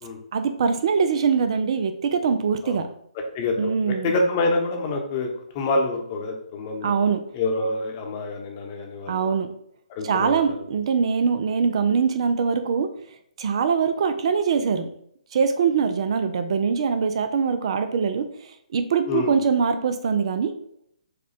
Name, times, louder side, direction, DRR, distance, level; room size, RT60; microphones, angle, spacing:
voice 1, 0.3-2.9 3.6-4.1 6.8-7.2 9.1-9.5 10.0-12.9 13.4-14.9 15.3-20.5, right 6 dB, 50° right, 9 dB, 0.4 m, -23 dB
voice 2, 3.3-6.9 7.3-9.3 9.9-10.5 19.1-19.3, left 2 dB, 30° left, 3 dB, 0.8 m, -27 dB
4.9 x 2.2 x 4.2 m, 0.69 s
figure-of-eight pair, 140°, 4 cm